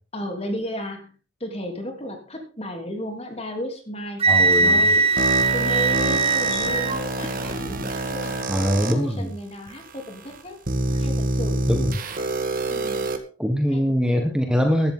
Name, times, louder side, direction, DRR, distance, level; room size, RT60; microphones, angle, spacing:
voice 1, 0.1-4.2 4.6-5.0 5.5-8.4 8.8-10.6 10.9-11.6 12.7-13.1 13.6-13.8 14.1-14.3, left 1 dB, 30° left, 3 dB, 3.4 m, -34 dB
Sliding door, 4.2-11.8, left 2 dB, 75° left, 7.6 m, -44 dB
Wind instrument woodwind instrument, 4.2-7.0, right 3 dB, 30° right, 0.9 m, -20 dB
voice 2, 4.3-4.9 8.5-9.3 11.7-11.9 13.4-14.9, equal, 5° right, 3 dB, 1.5 m, -22 dB
sound 1, 5.2-8.9 9.7-9.8 10.7-13.2, right 2 dB, 45° right, 1.8 m, -26 dB
15.0 x 12.5 x 3.9 m, 0.37 s
head